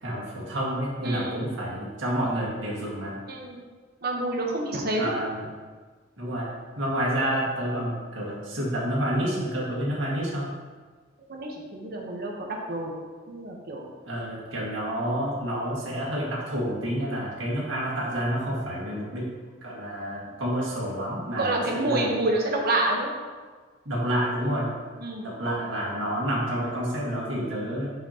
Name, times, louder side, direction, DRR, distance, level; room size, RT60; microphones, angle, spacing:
voice 1, 0.0-3.1 5.0-5.5 6.2-6.5 6.8-10.5 14.0-19.3 19.6-22.1 23.9-24.7 25.2-27.9, equal, 90° right, -5 dB, 1.8 m, -29 dB
voice 2, 1.0-1.4 3.3-3.6 4.0-5.1 11.3-12.9 13.3-13.9 21.4-23.1 25.0-25.3, right 2 dB, 55° right, -1 dB, 1.0 m, -28 dB
6.7 x 5.6 x 2.9 m, 1.5 s
head